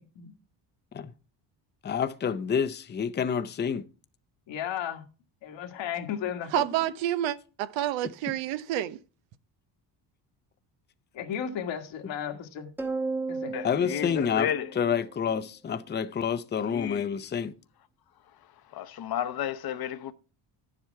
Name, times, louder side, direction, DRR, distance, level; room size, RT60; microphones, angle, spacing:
voice 1, 1.8-3.8 13.6-14.5 14.8-17.5, left 7 dB, 25° left, 0.6 m, -28 dB
voice 2, 4.5-5.0 5.4-6.5 11.1-12.7 13.3-13.6, left 9 dB, 70° left, 1.7 m, -34 dB
voice 3, 6.5-9.0, right 12 dB, 80° right, 0.8 m, -29 dB
sound 1, 12.8-15.4, right 3 dB, 5° right, 1.1 m, -34 dB
voice 4, 13.5-14.7 16.7-17.1 18.7-20.1, left 10 dB, 50° left, 0.9 m, -32 dB
9.8 x 7.5 x 4.5 m
cardioid pair, 100°, 45 cm